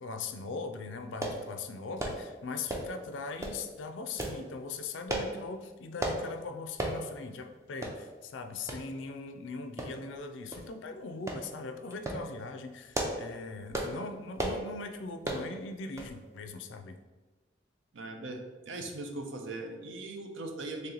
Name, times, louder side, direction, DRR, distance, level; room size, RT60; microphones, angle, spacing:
voice 1, 0.0-17.0, left 3 dB, 70° left, 6 dB, 0.4 m, -40 dB
sound 1, 1.2-1.4 2.0-2.2 2.7-3.0 3.4-3.6 4.2-4.4 5.1-5.3 6.0-6.2 6.8-7.0 7.4-7.5 7.8-8.0 8.7-8.8 9.8-10.2 10.5-10.7 11.3-11.4 11.9-12.2 12.7-13.3 13.7-14.0 14.4-14.6 15.2-15.5 16.0-16.2 16.4-16.5, right 1 dB, 15° right, 0.4 m, -34 dB
voice 2, 17.9-18.4 18.6-20.9, right 2 dB, 70° right, 4 dB, 0.5 m, -39 dB
3.2 x 2.9 x 3.8 m, 1.3 s
head